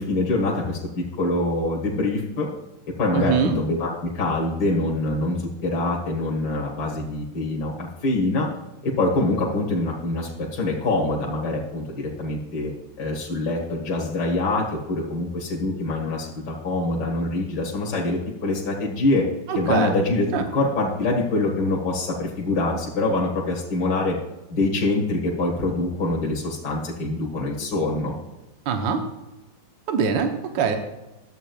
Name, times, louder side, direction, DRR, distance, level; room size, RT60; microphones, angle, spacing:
voice 1, 0.0-2.5 3.0-8.5 8.8-12.7 13.0-19.3 19.5-20.2 20.5-24.2 24.5-28.1, left 2 dB, 60° left, -4 dB, 2.2 m, -25 dB
voice 2, 3.1-3.6 19.5-19.9 20.3-20.4 28.7-29.0 29.9-30.8, right 6 dB, 75° right, 5 dB, 1.6 m, -23 dB
13.5 x 8.5 x 2.3 m, 1.0 s
omnidirectional pair, 2.1 m